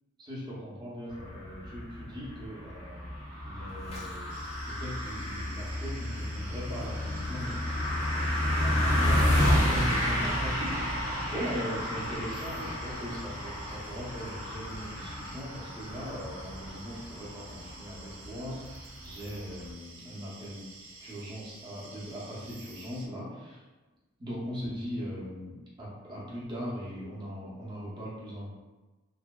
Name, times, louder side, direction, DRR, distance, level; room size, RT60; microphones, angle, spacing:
voice 1, 0.2-3.0 3.4-4.3 4.7-8.0 8.4-20.6 21.0-23.6 24.2-28.5, equal, 20° right, -7 dB, 0.6 m, -39 dB
sound 1, 1.1-19.7, left 1 dB, 85° left, 0.9 m, -31 dB
sound 2, 3.7-6.7 7.0-7.5, left 1 dB, 30° left, 0.4 m, -51 dB
sound 3, 4.3-23.1, right 3 dB, 70° right, 0.4 m, -50 dB
2.6 x 2.2 x 2.2 m, 1.2 s
head